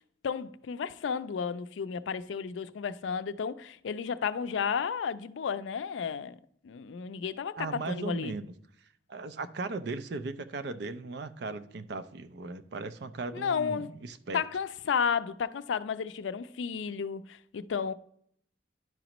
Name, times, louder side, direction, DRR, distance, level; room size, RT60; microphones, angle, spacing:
voice 1, 0.2-6.4 6.6-8.3 13.3-13.9 14.3-17.9, left 6 dB, 90° left, 0.4 m, -32 dB
voice 2, 7.6-8.5 9.1-14.4, right 3 dB, 65° right, 0.5 m, -37 dB
11.0 x 5.0 x 3.0 m
head